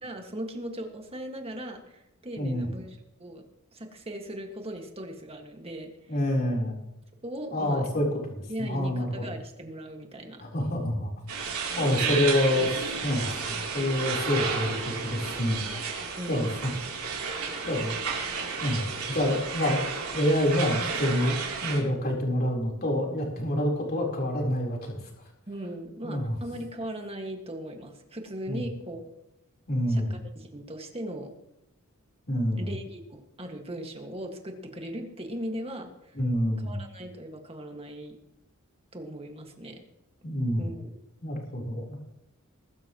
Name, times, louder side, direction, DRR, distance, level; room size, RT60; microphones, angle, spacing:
voice 1, 0.0-2.9 3.2-3.5 3.7-6.2 7.2-7.8 8.5-10.5 11.8-12.1 16.2-16.7 25.5-29.1 29.9-31.3 32.6-36.2 36.6-38.2 38.9-39.8 40.6-41.0, right 1 dB, 25° right, 3 dB, 1.9 m, -38 dB
voice 2, 2.3-2.7 6.1-6.8 7.5-9.3 10.4-11.1 11.8-15.6 16.3-16.7 17.7-17.9 18.6-19.8 20.1-25.0 26.0-26.4 28.5-28.7 29.7-30.1 32.3-32.7 36.1-36.8 40.2-40.7 41.2-42.0, left 1 dB, 45° left, -1 dB, 4.0 m, -27 dB
sound 1, 11.3-21.8, right 5 dB, 80° right, 3.3 m, -32 dB
21.0 x 12.5 x 3.1 m, 0.85 s
head